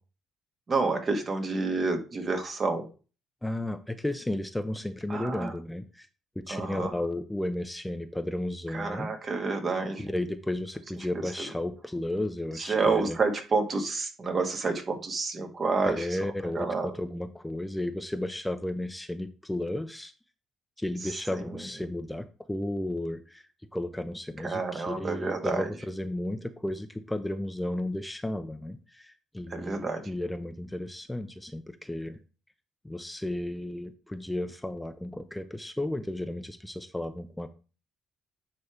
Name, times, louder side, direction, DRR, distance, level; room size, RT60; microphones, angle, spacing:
voice 1, 0.7-2.9 5.1-5.5 6.5-6.9 8.7-10.1 11.1-11.2 12.6-16.2 16.5-17.0 21.5-21.6 24.4-25.7 29.5-30.1, right 4 dB, 40° right, 4 dB, 1.9 m, -29 dB
voice 2, 3.4-6.1 6.4-9.1 10.0-13.2 15.8-20.1 20.8-32.2 32.8-37.5, left 1 dB, 10° left, 9 dB, 0.8 m, -33 dB
9.5 x 3.5 x 4.8 m, 0.36 s
hypercardioid pair, 55°, 0 cm